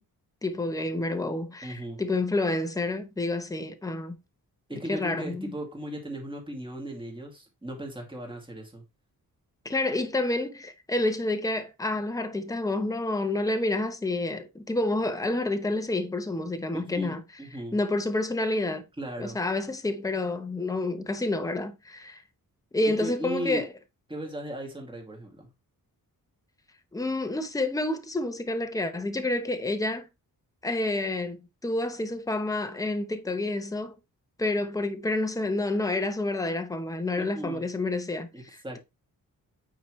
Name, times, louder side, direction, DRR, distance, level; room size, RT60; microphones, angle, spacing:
voice 1, 0.4-4.2 4.9-5.5 9.6-17.2 17.7-18.9 19.2-22.2 22.7-23.7 26.9-30.1 30.6-33.9 34.4-38.3, left 2 dB, 10° left, 0.8 m, -29 dB
voice 2, 1.6-2.0 4.7-8.8 16.7-17.8 19.0-19.4 22.9-23.7 24.1-25.5 37.2-37.7 38.3-38.8, right 1 dB, 15° right, 2.3 m, -37 dB
8.7 x 4.9 x 3.1 m
wide cardioid pair, 165°, 36 cm